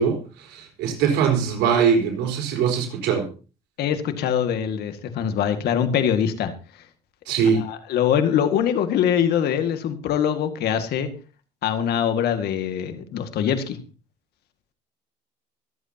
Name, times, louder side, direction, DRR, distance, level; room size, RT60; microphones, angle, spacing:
voice 1, 0.0-3.3 7.3-7.6, right 6 dB, 85° right, 3 dB, 4.3 m, -22 dB
voice 2, 3.8-6.5 7.6-11.1 11.6-13.8, left 9 dB, 75° left, 8 dB, 1.9 m, -23 dB
24.0 x 8.3 x 2.9 m, 0.35 s
cardioid pair, 110°, 17 cm